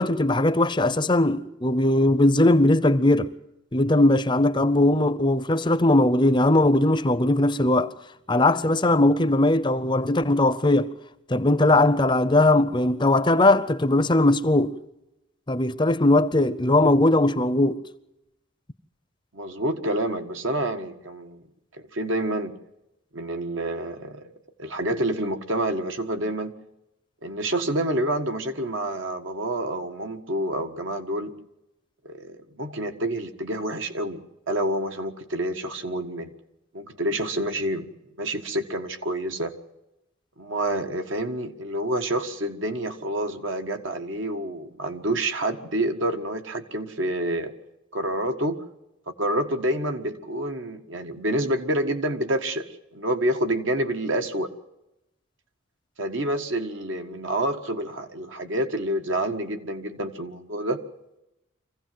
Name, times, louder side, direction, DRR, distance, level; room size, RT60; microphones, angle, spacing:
voice 1, 0.0-3.3 3.7-7.9 8.3-10.9 11.3-14.7 15.5-17.8, left 2 dB, 20° left, 0.6 m, -20 dB
voice 2, 19.3-21.4 21.7-22.5 23.1-24.3 24.6-26.5 27.2-31.3 32.0-36.3 36.7-37.9 38.2-39.5 40.4-47.5 47.9-48.6 49.2-54.5 56.0-60.8, right 1 dB, 70° right, 1.6 m, -28 dB
24.5 x 16.0 x 7.7 m
head